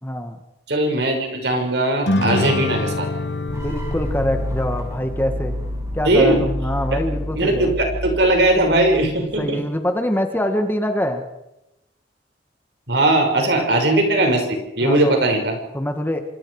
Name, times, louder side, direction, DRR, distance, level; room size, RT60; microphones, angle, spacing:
voice 1, 0.0-0.4 3.5-5.6 5.9-7.7 9.2-11.2 13.5-13.7 14.8-15.2 15.7-16.2, left 1 dB, 10° left, 6 dB, 1.8 m, -24 dB
voice 2, 0.7-3.1 6.0-6.4 7.4-9.6 12.9-15.6, right 1 dB, 65° right, 3 dB, 6.0 m, -19 dB
sound 1, 2.1-5.7, left 2 dB, 65° left, 1.3 m, -26 dB
sound 2, 3.5-9.4, equal, 15° right, 5.5 m, -29 dB
27.0 x 25.0 x 4.9 m, 0.89 s
head